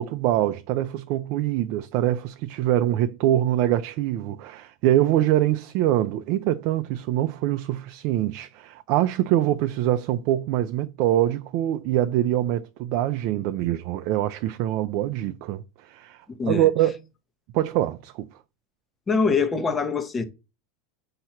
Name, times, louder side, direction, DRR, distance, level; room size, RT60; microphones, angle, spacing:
voice 1, 0.0-17.0 17.5-18.3, right 13 dB, 55° right, 0.5 m, -24 dB
voice 2, 16.3-16.7 19.1-20.2, left 4 dB, 20° left, 1.1 m, -24 dB
7.7 x 2.9 x 5.8 m
supercardioid pair, 125°, 0 cm